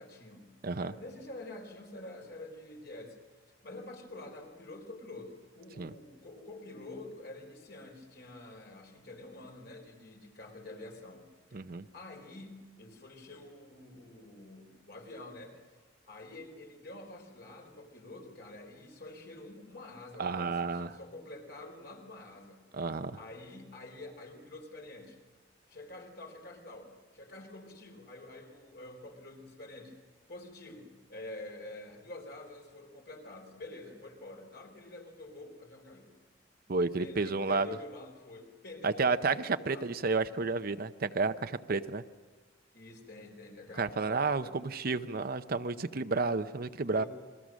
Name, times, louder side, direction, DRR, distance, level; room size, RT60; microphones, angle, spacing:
voice 1, 0.0-3.2 3.5-11.2 11.9-22.6 23.1-25.2 25.7-30.0 30.3-36.1 36.8-40.4 42.7-44.6 46.9-47.1, left 2 dB, 60° left, 2 dB, 4.1 m, -48 dB
voice 2, 0.6-0.9 5.8-5.9 11.5-11.8 20.2-20.9 22.7-23.2 36.7-37.7 38.8-42.0 43.8-47.0, right 4 dB, 50° right, 10 dB, 0.7 m, -31 dB
29.0 x 22.0 x 6.3 m, 1.3 s
head